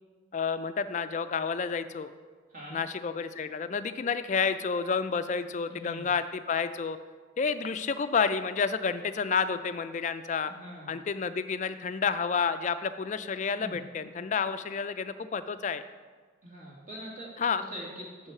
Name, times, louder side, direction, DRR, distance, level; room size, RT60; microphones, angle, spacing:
voice 1, 0.3-2.1 2.7-7.0 7.4-10.5 10.9-15.8 17.4-17.6, left 5 dB, 40° left, 11 dB, 0.3 m, -30 dB
voice 2, 5.7-6.1 10.5-11.0 13.6-13.8 16.4-17.3 17.7-18.3, equal, 40° right, -4 dB, 2.1 m, -43 dB
7.1 x 5.5 x 5.9 m, 1.5 s
head